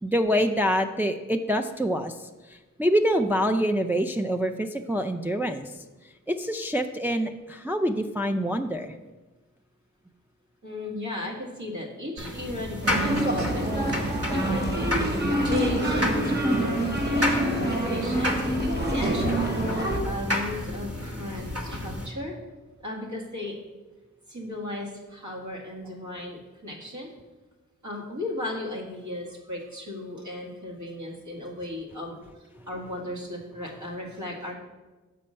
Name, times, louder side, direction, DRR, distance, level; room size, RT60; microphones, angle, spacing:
voice 1, 0.0-5.7 6.3-8.9, equal, 5° right, 5 dB, 0.4 m, -26 dB
voice 2, 10.6-13.7 13.9-18.4 18.9-22.3 22.8-23.6 24.3-27.1 27.8-34.5, left 1 dB, 65° right, -2 dB, 1.9 m, -36 dB
sound 1, 12.2-22.1, left 1 dB, 50° right, 1.2 m, -31 dB
sound 2, 12.8-20.0, right 1 dB, 30° right, 1.5 m, -26 dB
6.8 x 4.4 x 6.4 m, 1.2 s
wide cardioid pair, 45°, 31 cm